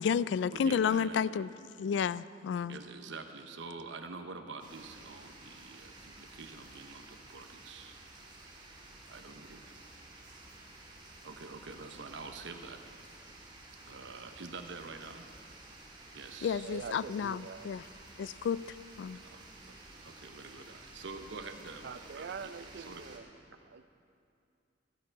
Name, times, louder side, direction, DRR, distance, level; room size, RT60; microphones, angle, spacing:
voice 1, 0.0-1.5 1.8-2.8 16.4-17.8 18.2-18.7 19.0-19.2, left 7 dB, 70° left, 18 dB, 0.3 m, -31 dB
voice 2, 0.5-1.2 2.7-8.0 9.1-9.6 11.2-12.8 13.8-15.3 16.1-16.7 19.1-23.2, right 4 dB, 80° right, 6 dB, 0.9 m, -46 dB
sound 1, 4.6-23.2, right 2 dB, 25° right, 1.9 m, -53 dB
voice 3, 16.5-17.8 18.2-18.5 21.8-23.3 23.7-23.9, right 5 dB, 65° right, 13 dB, 0.5 m, -44 dB
14.5 x 12.5 x 4.6 m, 2.5 s
head